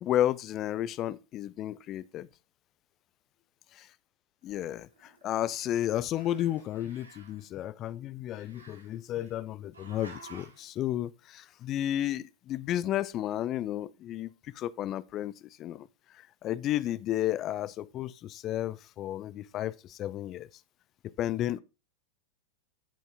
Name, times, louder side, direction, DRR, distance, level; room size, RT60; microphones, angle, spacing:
voice 1, 0.0-2.3 3.7-3.9 4.4-15.9 16.1-20.5 21.2-21.6, left 12 dB, 35° left, 0.4 m, -32 dB
Growling, 4.5-5.7 6.0-7.5 8.3-9.3 9.7-10.7, right 4 dB, 70° right, 2.2 m, -53 dB
8.1 x 7.3 x 3.5 m
figure-of-eight pair, 90°, 0 cm